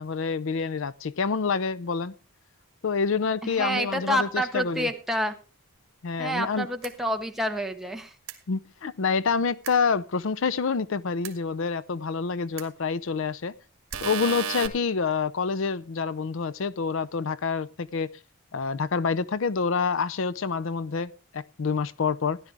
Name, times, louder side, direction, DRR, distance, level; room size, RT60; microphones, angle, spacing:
voice 1, 0.0-2.1 2.8-4.9 6.0-6.7 8.5-13.5 14.0-18.1 18.5-22.4, left 5 dB, 60° left, 0.5 m, -27 dB
voice 2, 3.4-5.4 6.2-8.1, equal, ahead, 1.2 m, -28 dB
sound 1, 6.8-6.9 8.3-8.4 9.6-9.7 11.2-11.3 12.6-12.7 13.9-14.7, right 7 dB, 60° right, 2.0 m, -32 dB
16.5 x 11.0 x 3.4 m
head